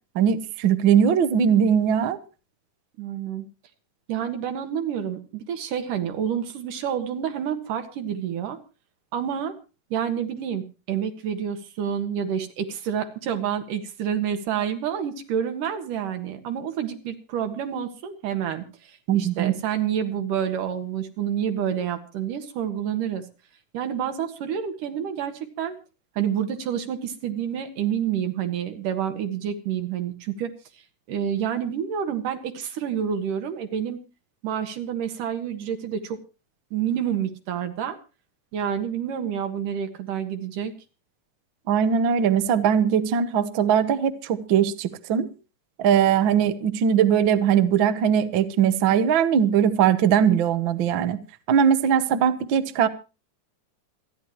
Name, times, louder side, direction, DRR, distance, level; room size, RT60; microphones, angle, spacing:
voice 1, 0.1-2.2 19.1-19.5 41.7-45.3 45.8-51.2 51.5-52.9, right 8 dB, 65° right, 10 dB, 1.2 m, -20 dB
voice 2, 3.0-3.5 4.1-8.6 9.1-9.6 9.9-23.3 23.7-25.7 26.2-30.5 31.1-34.0 34.4-36.2 36.7-38.0 38.5-40.8, right 8 dB, 80° right, 6 dB, 3.2 m, -28 dB
27.5 x 10.0 x 3.1 m, 0.32 s
omnidirectional pair, 3.7 m